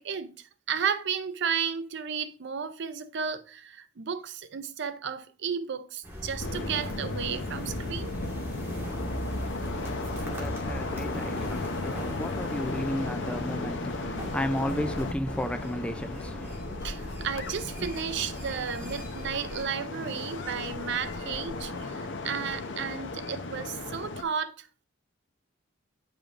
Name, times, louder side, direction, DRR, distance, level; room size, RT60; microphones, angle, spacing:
voice 1, 0.0-8.1 16.8-24.9, right 7 dB, 60° right, 0.5 m, -33 dB
sound 1, 6.0-19.6, equal, 15° right, 1.6 m, -38 dB
sound 2, 6.4-24.2, left 3 dB, 65° left, 0.7 m, -36 dB
voice 2, 9.7-16.6, left 1 dB, 5° left, 0.3 m, -34 dB
8.9 x 5.1 x 2.5 m
head